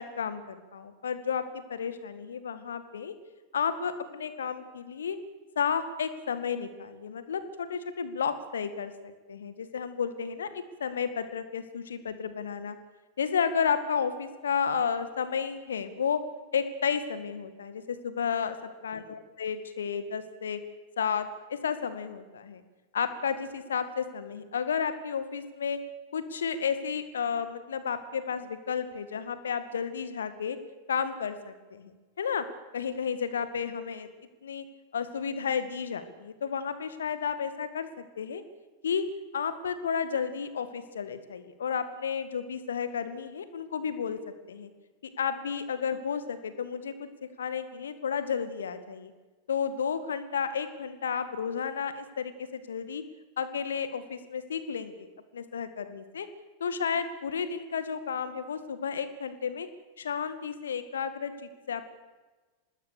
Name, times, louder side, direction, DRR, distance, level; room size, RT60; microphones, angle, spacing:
voice 1, 0.0-3.1 3.5-5.2 5.6-12.8 13.2-16.2 16.5-18.6 18.8-20.6 21.0-22.6 22.9-25.8 26.1-30.6 30.9-32.4 32.7-34.1 34.4-34.6 34.9-38.4 38.8-39.0 39.3-44.2 44.5-44.7 45.2-47.1 47.4-49.1 49.5-53.0 53.4-55.1 55.3-56.3 56.6-59.7 60.0-61.9, left 6 dB, 65° left, 11 dB, 2.1 m, -32 dB
25.0 x 20.0 x 6.9 m, 1.2 s
figure-of-eight pair, 90°, 0 cm